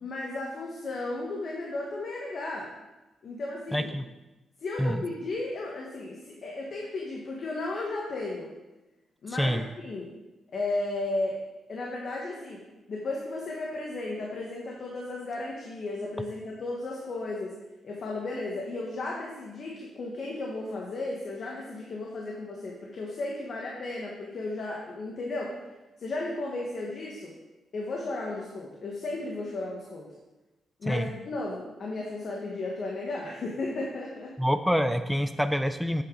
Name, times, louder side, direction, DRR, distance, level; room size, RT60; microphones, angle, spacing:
voice 1, 0.0-2.7 3.2-3.9 4.6-8.5 9.2-10.1 10.5-11.4 11.7-17.6 17.8-25.6 26.0-27.3 27.7-30.1 30.8-34.4, left 2 dB, 45° left, -2 dB, 1.2 m, -34 dB
voice 2, 3.7-4.0 4.8-5.0 9.4-9.6 30.9-31.1 34.4-36.0, equal, ahead, 9 dB, 0.4 m, -26 dB
8.5 x 7.8 x 3.8 m, 1.0 s
wide cardioid pair, 150°, 0 cm